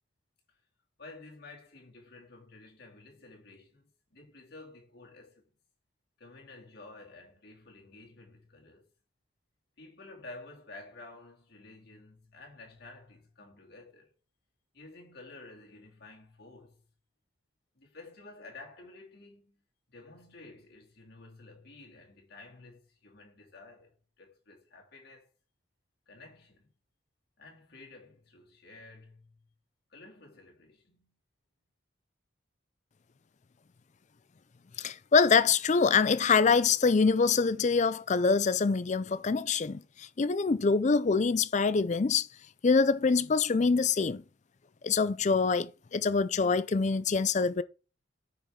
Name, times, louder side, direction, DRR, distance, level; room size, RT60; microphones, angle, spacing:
voice 1, 1.0-5.5 6.2-8.9 9.8-14.1 14.7-16.8 17.7-19.6 19.9-25.3 26.1-26.7 27.4-29.5 29.9-31.2, left 2 dB, 50° left, 2.7 m, -52 dB
voice 2, 34.8-42.3 42.6-44.2 44.8-47.6, left 5 dB, 35° left, 0.4 m, -25 dB
9.3 x 5.0 x 3.8 m
head